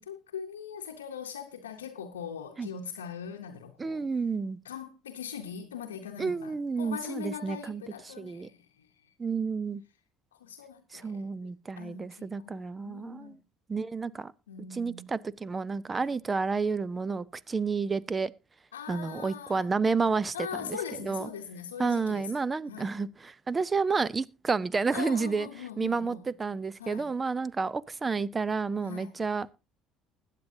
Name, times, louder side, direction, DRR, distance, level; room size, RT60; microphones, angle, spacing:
voice 1, 0.0-4.1 4.6-9.1 10.3-13.4 14.5-15.1 15.9-16.1 18.7-19.7 20.3-22.4 22.7-22.9 24.9-26.3 26.8-27.1 28.8-29.1, left 7 dB, 90° left, 0.8 m, -41 dB
voice 2, 3.8-4.6 6.2-8.5 9.2-9.8 10.9-13.4 13.7-14.3 14.6-18.3 18.9-20.8 21.0-21.3 21.8-25.5 25.8-29.5, right 4 dB, 25° right, 0.6 m, -30 dB
20.5 x 8.3 x 2.7 m
hypercardioid pair, 60°, 0 cm